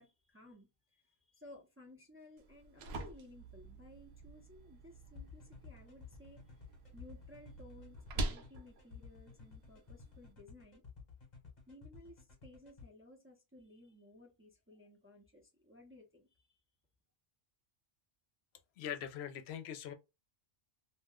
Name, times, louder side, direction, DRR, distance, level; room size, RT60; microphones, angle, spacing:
voice 1, 0.0-10.8 11.7-16.4, left 1 dB, 15° right, 0.5 m, -58 dB
sound 1, 2.4-10.3, right 2 dB, 75° right, 0.9 m, -46 dB
sound 2, 5.2-12.9, left 6 dB, 45° left, 1.1 m, -54 dB
voice 2, 18.8-19.9, left 9 dB, 75° left, 0.8 m, -42 dB
2.7 x 2.1 x 3.5 m
omnidirectional pair, 1.1 m